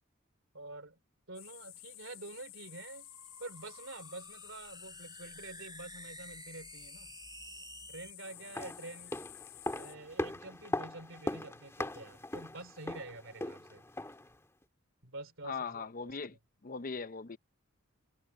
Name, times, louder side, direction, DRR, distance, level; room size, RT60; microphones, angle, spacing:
voice 1, 0.5-1.0 1.3-3.1 3.4-7.1 7.9-9.2 9.7-13.8 15.0-16.2, right 2 dB, 65° right, 3.4 m, -47 dB
sound 1, 1.3-10.0, left 15 dB, 75° left, 1.1 m, -52 dB
sound 2, 2.7-8.1, right 4 dB, 20° right, 5.7 m, -53 dB
sound 3, 8.3-14.3 14.6-14.7, left 1 dB, 15° left, 1.7 m, -40 dB
voice 2, 15.4-16.4 16.6-17.4, left 5 dB, 40° left, 0.7 m, -39 dB
head